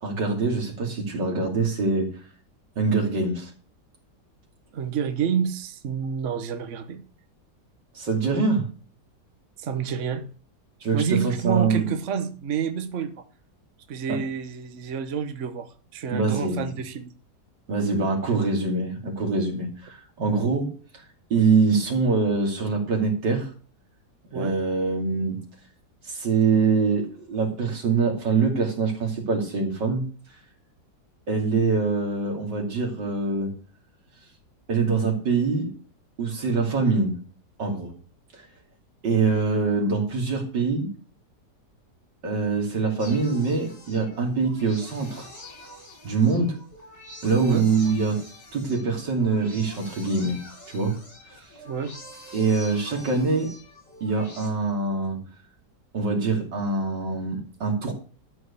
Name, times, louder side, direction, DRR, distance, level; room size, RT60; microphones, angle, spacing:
voice 1, 0.0-2.1 2.8-3.5 7.9-8.7 10.8-11.9 14.1-14.2 16.1-16.6 17.7-21.0 21.3-23.5 24.3-25.4 26.0-30.0 31.3-33.5 34.7-35.7 36.2-37.2 37.6-37.9 38.3-38.4 39.0-40.9 42.2-45.3 46.0-46.6 47.2-48.2 48.5-50.4 50.7-51.0 52.3-53.5 54.0-55.2 55.9-57.9, right 4 dB, 80° right, 2 dB, 3.3 m, -24 dB
voice 2, 4.7-7.0 9.6-10.2 10.9-13.2 13.9-17.1 24.3-24.6 47.4-47.7 51.6-51.9, right 7 dB, 50° right, 8 dB, 1.2 m, -28 dB
sound 1, 43.0-54.5, left 1 dB, 75° left, 4.8 m, -46 dB
12.5 x 4.7 x 8.3 m, 0.39 s
omnidirectional pair, 1.9 m